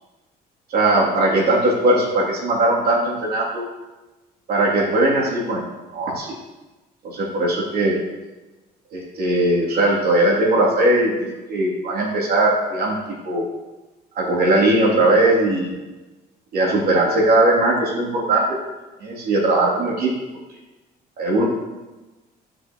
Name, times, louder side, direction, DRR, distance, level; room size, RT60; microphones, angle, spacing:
voice 1, 0.7-3.7 4.5-5.6 5.9-6.3 7.0-7.9 8.9-11.1 11.5-13.0 13.2-13.4 14.1-15.7 16.5-18.4 19.0-20.1 21.2-21.4, right 2 dB, 65° right, -4 dB, 3.0 m, -19 dB
13.5 x 6.2 x 3.1 m, 1.1 s
cardioid pair, 110°, 17 cm